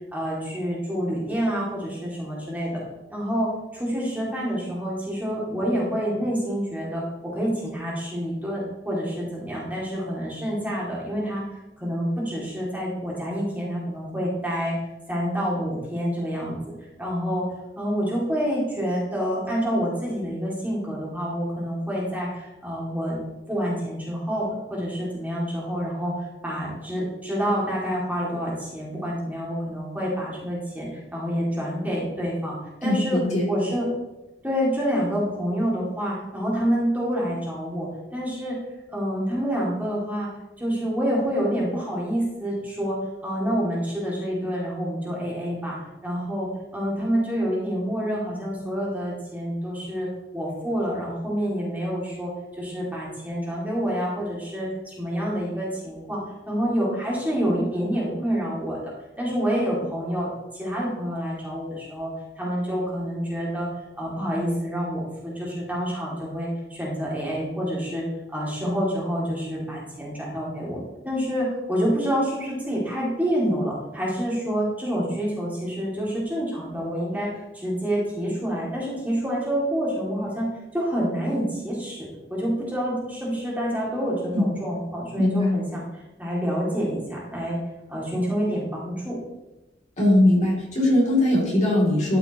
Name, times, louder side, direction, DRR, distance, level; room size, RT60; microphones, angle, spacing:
voice 1, 0.1-2.8 3.1-11.4 11.8-14.8 15.1-16.6 17.0-17.5 17.8-23.2 23.5-33.9 34.4-38.6 38.9-40.3 40.6-43.0 43.2-45.8 46.0-50.1 50.3-56.2 56.5-63.7 64.0-70.8 71.0-80.5 80.7-87.6 87.9-89.2, equal, 10° right, -5 dB, 2.4 m, -27 dB
voice 2, 32.8-33.5 84.3-84.5 85.2-85.5 90.0-92.2, left 1 dB, 45° left, -4 dB, 2.7 m, -20 dB
13.0 x 5.8 x 3.0 m, 1.0 s
head